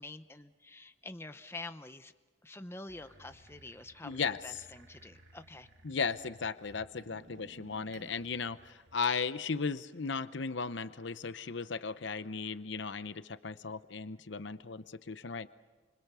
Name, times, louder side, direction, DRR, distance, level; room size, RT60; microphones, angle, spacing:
voice 1, 0.0-2.1 2.4-5.7, left 2 dB, 10° left, 9 dB, 0.7 m, -47 dB
sound 1, 2.9-9.2, right 2 dB, 60° right, 2.6 m, -58 dB
voice 2, 4.0-4.6 5.8-15.5, left 5 dB, 65° left, 13 dB, 0.8 m, -36 dB
29.5 x 26.0 x 6.9 m, 1.3 s
head